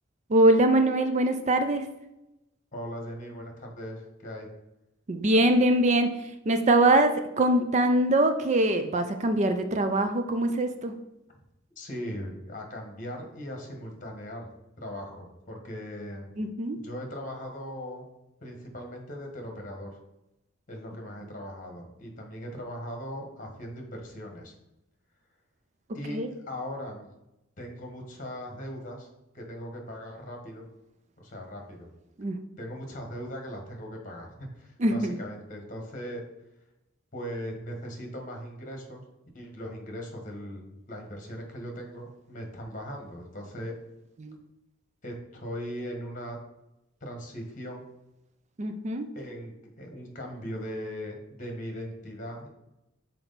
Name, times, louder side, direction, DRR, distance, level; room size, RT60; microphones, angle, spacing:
voice 1, 0.3-1.9 5.1-6.1 6.5-10.9 16.4-16.8 26.1-26.3 32.2-32.4 34.8-35.2 44.2-44.4 48.6-49.1, right 1 dB, 35° right, 8 dB, 0.4 m, -23 dB
voice 2, 2.7-4.5 11.8-14.5 14.8-16.3 16.7-18.0 18.4-20.0 20.7-24.5 25.9-27.1 27.6-29.1 29.3-30.6 31.2-31.9 32.6-36.2 37.1-39.0 39.3-43.7 45.0-46.4 47.0-47.8 49.1-52.5, equal, 40° left, 2 dB, 1.3 m, -39 dB
6.1 x 4.4 x 4.0 m, 0.90 s
head